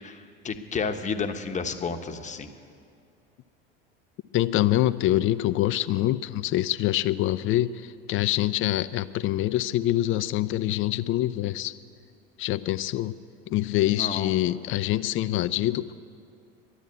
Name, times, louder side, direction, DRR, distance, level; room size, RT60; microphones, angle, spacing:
voice 1, 0.0-2.5 13.9-14.3, left 5 dB, 25° left, 7 dB, 1.1 m, -31 dB
voice 2, 4.3-11.8 12.4-13.1 13.5-15.9, left 14 dB, 45° left, 15 dB, 0.5 m, -25 dB
12.5 x 10.0 x 9.6 m, 2.4 s
hypercardioid pair, 85°, 30 cm